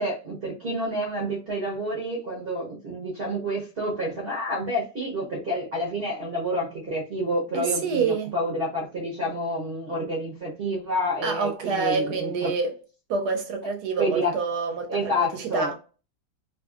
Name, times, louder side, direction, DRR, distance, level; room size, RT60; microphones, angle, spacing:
voice 1, 0.0-12.5 14.0-14.3 14.9-15.7, equal, 50° right, 0.7 m, -29 dB
voice 2, 7.5-8.3 11.2-12.7 13.1-15.7, right 5 dB, 70° right, 1.1 m, -27 dB
2.7 x 2.5 x 2.4 m
omnidirectional pair, 1.9 m